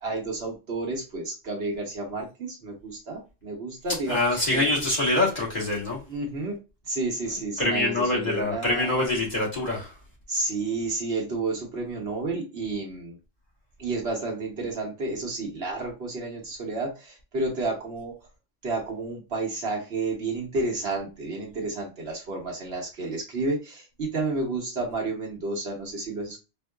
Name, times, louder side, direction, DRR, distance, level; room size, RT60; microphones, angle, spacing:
voice 1, 0.0-4.7 6.1-6.6 6.9-9.1 10.3-13.2 13.8-18.2 18.6-26.4, right 2 dB, 60° right, 1.2 m, -31 dB
voice 2, 4.1-6.0 7.6-9.9, left 2 dB, 35° left, 1.5 m, -25 dB
4.4 x 2.3 x 2.2 m
omnidirectional pair, 1.3 m